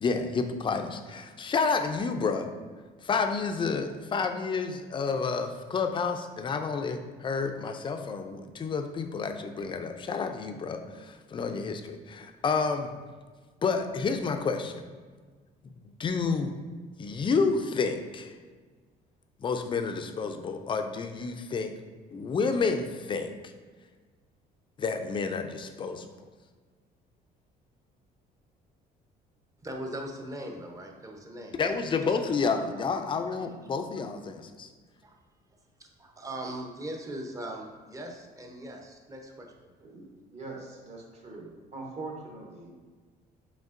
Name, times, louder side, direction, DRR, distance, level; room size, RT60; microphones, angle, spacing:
voice 1, 0.0-2.5 3.0-12.9 13.6-14.8 15.8-16.5 17.0-18.3 19.4-21.8 22.1-23.5 24.8-26.1 31.4-34.7, left 4 dB, 30° left, 6 dB, 0.4 m, -30 dB
voice 2, 29.6-31.5 35.0-35.1 35.8-35.9 36.2-39.7, right 1 dB, 20° right, 2 dB, 0.6 m, -39 dB
voice 3, 40.3-42.7, right 3 dB, 40° right, -1 dB, 1.0 m, -42 dB
5.2 x 3.4 x 2.5 m, 1.4 s
cardioid pair, 110°, 17 cm